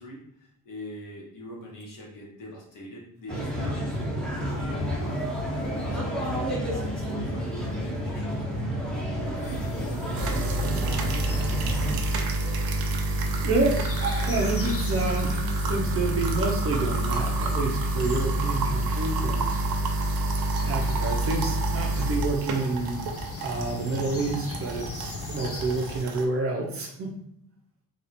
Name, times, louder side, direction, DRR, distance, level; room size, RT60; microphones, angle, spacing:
voice 1, 0.0-4.0 4.5-8.6 8.9-10.9, equal, 60° left, -3 dB, 1.5 m, -43 dB
sound 1, 3.3-12.0, equal, ahead, 0.9 m, -30 dB
sound 2, 9.4-26.0, left 3 dB, 40° left, 0.5 m, -38 dB
sound 3, 10.2-26.3, right 2 dB, 75° right, 0.8 m, -28 dB
voice 2, 13.4-19.6 20.6-23.1 23.4-27.1, right 3 dB, 40° right, 1 dB, 0.8 m, -29 dB
4.0 x 2.6 x 4.3 m, 0.71 s
cardioid pair, 170°, 36 cm